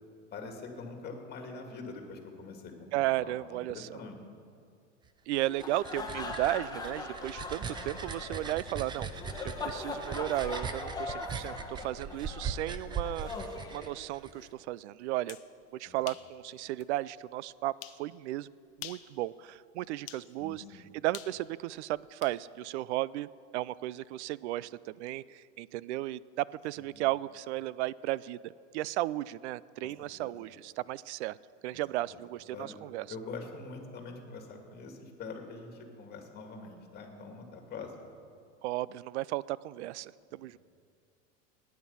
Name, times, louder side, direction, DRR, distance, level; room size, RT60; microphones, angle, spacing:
voice 1, 0.3-2.9 3.2-4.2 11.4-11.6 15.9-16.0 20.4-20.9 26.8-27.0 29.8-29.9 30.2-30.4 31.7-31.8 32.1-32.2 32.5-32.8 33.1-38.1 40.5-40.6, left 4 dB, 25° left, 3 dB, 2.4 m, -44 dB
voice 2, 2.9-4.0 5.3-9.1 9.4-15.4 15.7-17.7 18.0-18.5 18.8-20.6 20.9-31.4 31.6-33.1 38.6-40.6, right 16 dB, 65° right, 21 dB, 0.5 m, -35 dB
sound 1, 5.4-14.5, left 3 dB, 10° left, 1.4 m, -41 dB
sound 2, 5.4-14.3, right 5 dB, 15° right, 0.5 m, -40 dB
sound 3, 15.1-15.5 16.1-16.3 16.8-16.9 17.8-18.0 18.7-19.1 20.1-20.3 21.1-22.4, left 15 dB, 40° left, 0.7 m, -45 dB
18.5 x 9.5 x 5.7 m, 2.3 s
supercardioid pair, 130°, 37 cm